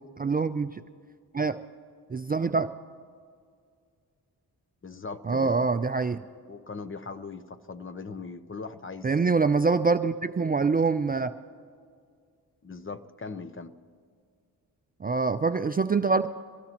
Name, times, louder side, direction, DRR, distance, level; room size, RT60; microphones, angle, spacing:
voice 1, 0.2-0.8 1.3-1.6 2.1-2.7 5.3-6.2 9.0-11.3 15.0-16.3, right 4 dB, 25° right, 10 dB, 0.4 m, -25 dB
voice 2, 4.8-5.7 6.5-9.5 12.6-13.8, left 4 dB, 30° left, 12 dB, 0.8 m, -40 dB
24.0 x 17.0 x 2.9 m, 2.1 s
cardioid pair, 75°, 38 cm